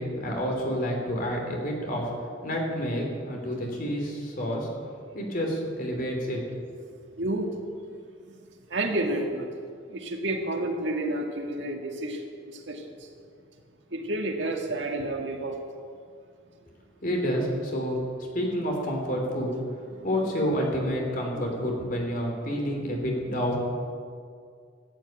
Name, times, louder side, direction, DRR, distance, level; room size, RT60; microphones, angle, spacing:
voice 1, 0.0-2.1 2.4-4.7 5.1-6.4 17.0-18.0 18.3-19.5 20.0-23.7, equal, 50° left, 1 dB, 3.1 m, -29 dB
voice 2, 7.2-7.5 8.7-9.5 9.9-12.9 13.9-15.6 19.9-20.1 21.4-21.7, right 1 dB, 70° right, 2 dB, 1.9 m, -30 dB
14.0 x 9.1 x 8.9 m, 2.2 s
head